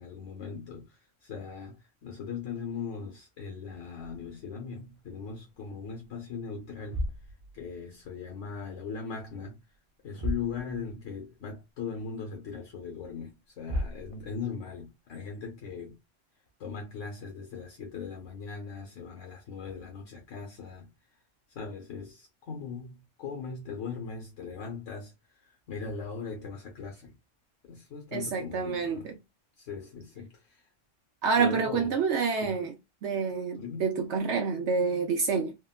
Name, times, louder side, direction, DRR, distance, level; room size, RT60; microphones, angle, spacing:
voice 1, 0.0-7.0 7.5-9.6 10.0-16.0 16.6-20.9 21.5-27.1 27.6-29.1 29.6-30.6 31.4-31.9 32.4-32.5 33.5-33.9, left 5 dB, 80° left, 1.2 m, -39 dB
sound 1, 3.9-5.6 5.9-6.2 6.7-8.5 8.8-9.5 9.7-9.8 10.1-11.1 11.5-11.6 12.2-12.3 13.3-13.4 13.6-14.6, equal, 50° right, 0.4 m, -38 dB
voice 2, 28.1-29.1 31.2-32.7 33.0-35.6, right 5 dB, 70° right, 0.8 m, -28 dB
3.5 x 2.1 x 2.3 m
omnidirectional pair, 1.3 m